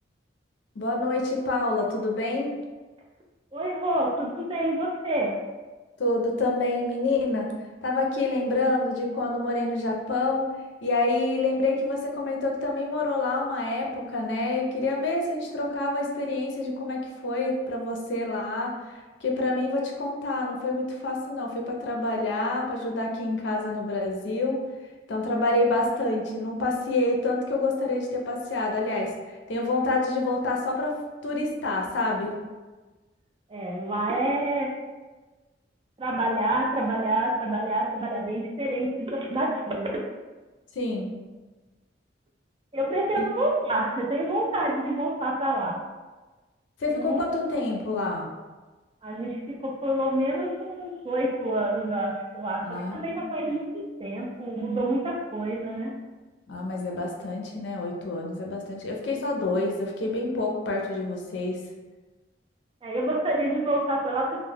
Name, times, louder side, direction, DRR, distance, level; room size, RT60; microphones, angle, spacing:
voice 1, 0.8-2.5 6.0-7.5 7.8-10.5 10.8-24.6 25.1-29.1 29.5-30.9 31.2-32.4 40.8-41.1 43.2-43.3 46.8-48.3 52.6-53.4 56.5-61.6, left 2 dB, 70° left, 0 dB, 0.5 m, -27 dB
voice 2, 3.5-5.3 33.5-34.7 36.0-40.0 42.7-45.8 46.9-47.2 49.0-55.9 62.8-64.4, right 1 dB, 30° right, -1 dB, 0.4 m, -27 dB
2.2 x 2.0 x 3.1 m, 1.2 s
head